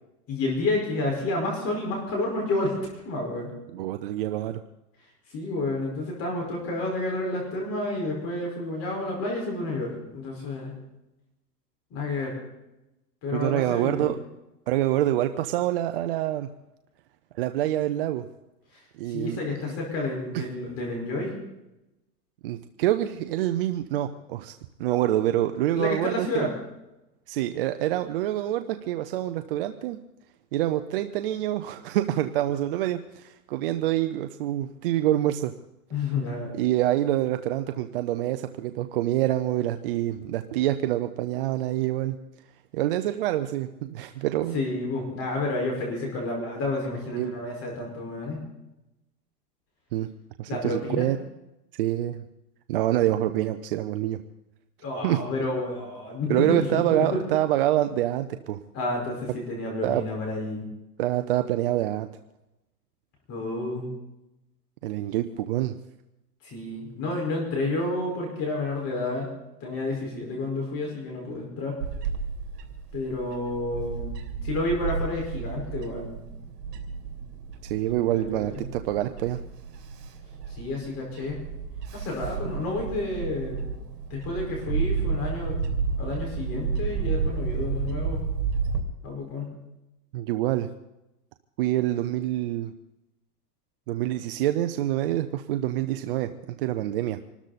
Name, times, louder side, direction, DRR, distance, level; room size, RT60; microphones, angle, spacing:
voice 1, 0.3-2.8 3.0-3.5 5.3-10.8 11.9-12.4 13.2-14.2 18.7-18.8 19.1-21.3 25.7-26.5 35.9-36.5 44.5-48.4 50.5-51.1 54.8-57.2 58.7-60.6 63.3-63.9 66.4-69.3 69.6-71.8 72.9-74.2 74.4-76.1 77.8-78.6 80.5-81.4 81.9-83.7 84.1-85.6 86.0-88.2 89.0-89.5, left 2 dB, 30° left, 0 dB, 5.0 m, -30 dB
voice 2, 3.7-4.6 13.3-14.1 14.7-16.5 17.3-18.3 19.0-19.4 20.3-20.4 22.4-24.5 24.8-26.5 27.3-30.0 30.5-35.5 36.5-42.2 42.7-44.6 47.1-47.4 49.9-50.1 50.4-51.2 51.8-52.2 52.7-54.2 55.0-55.2 56.3-58.6 59.8-60.0 61.0-62.1 64.8-65.8 77.6-79.4 90.1-90.7 91.6-92.7 93.9-96.3 96.6-97.2, right 13 dB, 35° right, 9 dB, 0.6 m, -26 dB
Bird / Wind, 71.8-88.8, right 5 dB, 70° right, 2.9 m, -32 dB
25.0 x 13.0 x 4.1 m, 0.95 s
hypercardioid pair, 150°, 49 cm